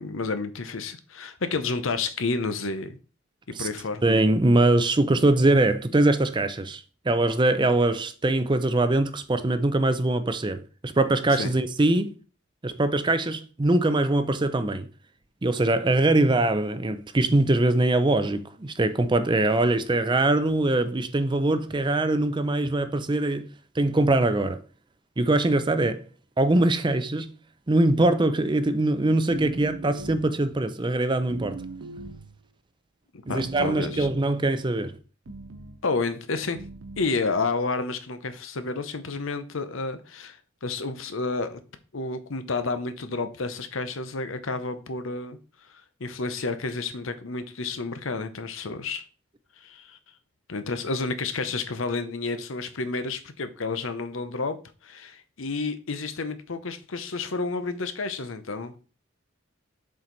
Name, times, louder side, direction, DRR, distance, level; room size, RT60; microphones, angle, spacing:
voice 1, 0.0-3.0 3.6-4.0 11.3-11.5 33.1-34.1 35.8-36.6 37.0-41.6 41.9-45.4 45.7-49.0 49.6-50.0 50.5-54.6 54.8-58.7, left 3 dB, 70° left, 0.8 m, -30 dB
voice 2, 4.0-12.1 12.6-14.9 15.4-23.5 23.8-24.6 25.2-26.0 26.4-27.3 27.7-31.6 33.3-35.0, right 2 dB, 20° right, 0.5 m, -22 dB
sound 1, 29.3-30.4 31.3-32.4 33.3-34.4 35.3-35.8 36.6-37.1, right 3 dB, 70° right, 0.6 m, -39 dB
7.4 x 4.5 x 4.0 m
head